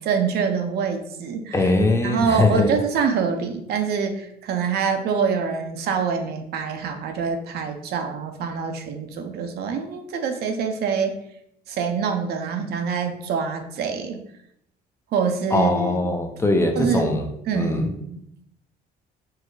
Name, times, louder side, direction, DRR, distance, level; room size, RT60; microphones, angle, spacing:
voice 1, 0.0-1.7 2.0-11.2 11.7-14.2 15.1-16.1 16.8-17.1 17.5-18.4, right 6 dB, 70° right, 5 dB, 0.7 m, -25 dB
voice 2, 1.5-2.7 15.5-17.3 17.5-17.9, left 2 dB, 15° left, 4 dB, 0.6 m, -21 dB
4.7 x 2.1 x 4.6 m, 0.75 s
cardioid pair, 110°, 17 cm